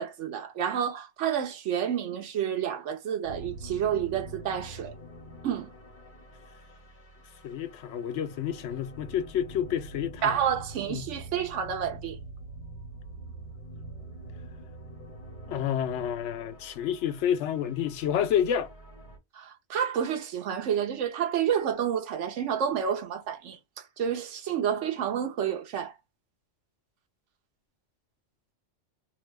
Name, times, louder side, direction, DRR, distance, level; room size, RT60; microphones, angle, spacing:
voice 1, 0.0-4.9 5.4-5.7 10.2-12.2 19.3-23.6 24.0-25.9, right 8 dB, 80° right, 1.1 m, -29 dB
sound 1, 3.2-19.2, right 1 dB, 45° left, 1.2 m, -45 dB
voice 2, 7.4-10.4 10.9-11.0 15.5-18.7, left 9 dB, 75° left, 0.9 m, -29 dB
2.9 x 2.1 x 3.2 m
omnidirectional pair, 1.2 m